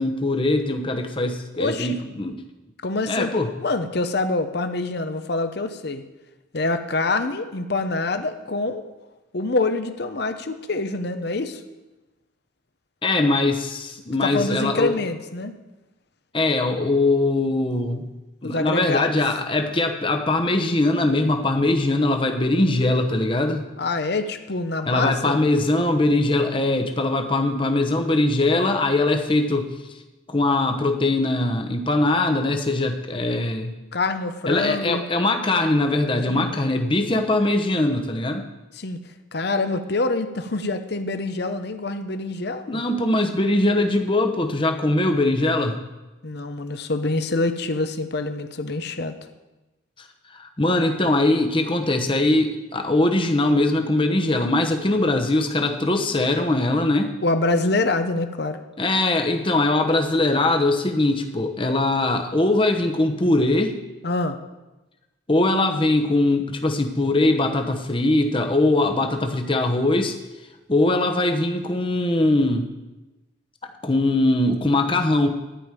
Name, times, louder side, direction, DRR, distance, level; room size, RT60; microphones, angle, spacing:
voice 1, 0.0-2.4 3.1-3.5 13.0-15.0 16.3-18.1 18.4-23.7 24.8-29.7 30.3-33.7 34.5-38.4 42.7-45.8 50.3-57.1 58.8-63.8 65.3-70.1 70.7-72.7 73.8-75.3, left 2 dB, 25° left, 5 dB, 1.0 m, -21 dB
voice 2, 1.6-2.0 2.8-3.3 3.6-6.0 6.5-8.8 9.3-11.6 14.2-15.6 18.4-19.2 23.8-25.4 33.9-35.0 36.3-36.6 38.7-39.0 39.3-42.8 46.2-49.2 57.2-58.6 64.0-64.4, left 2 dB, 55° left, 9 dB, 0.8 m, -25 dB
12.5 x 5.3 x 9.1 m, 1.1 s
head